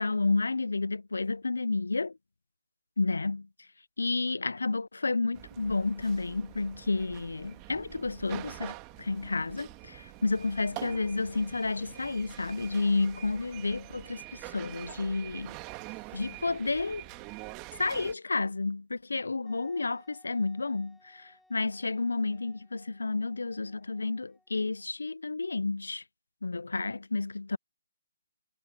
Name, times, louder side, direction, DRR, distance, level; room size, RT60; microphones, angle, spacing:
voice 1, 0.0-2.1 3.0-3.5 4.0-15.6 16.1-17.0 17.8-26.0 26.4-27.6, left 3 dB, 90° left, 0.3 m, -31 dB
sound 1, 5.3-18.1, right 25 dB, 25° right, 1.7 m, -45 dB
sound 2, 7.3-17.6, left 8 dB, 50° left, 2.8 m, -65 dB
Wind instrument woodwind instrument, 19.5-25.0, left 1 dB, ahead, 7.6 m, -64 dB
hypercardioid pair, 150°, 0 cm